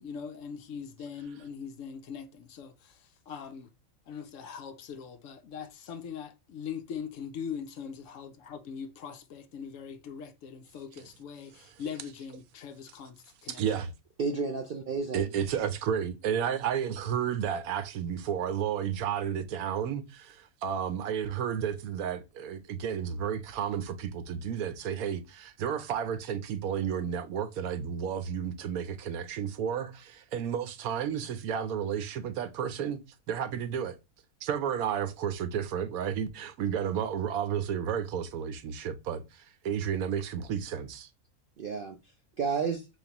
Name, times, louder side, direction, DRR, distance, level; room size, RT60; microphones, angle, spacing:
voice 1, 0.0-3.7 4.1-13.6, left 7 dB, 70° left, 0.9 m, -41 dB
voice 2, 13.5-13.9 15.1-33.0 33.3-34.0 34.4-41.1, right 8 dB, 80° right, 1.1 m, -32 dB
voice 3, 14.2-15.3 41.6-42.9, right 5 dB, 65° right, 0.5 m, -32 dB
4.1 x 3.2 x 2.8 m
omnidirectional pair, 1.5 m